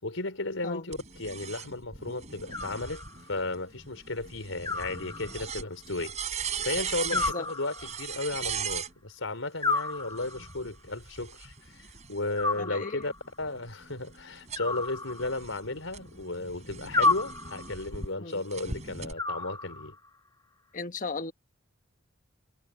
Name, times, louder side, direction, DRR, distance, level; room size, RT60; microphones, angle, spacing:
voice 1, 0.0-3.0 3.3-6.2 6.6-13.1 13.4-20.0, left 2 dB, 80° left, 4.7 m, -34 dB
sound 1, 0.9-8.9 10.1-12.4 13.0-18.1 18.5-19.1, right 6 dB, 35° right, 6.9 m, -39 dB
Animal, 2.5-3.4 4.6-5.7 7.1-8.2 9.6-10.6 12.4-13.3 14.6-15.7 16.9-17.9 19.2-20.1, left 3 dB, 20° left, 1.1 m, -31 dB
voice 2, 7.1-7.5 12.5-13.1 18.2-18.4 20.7-21.3, left 3 dB, 40° left, 1.3 m, -36 dB
head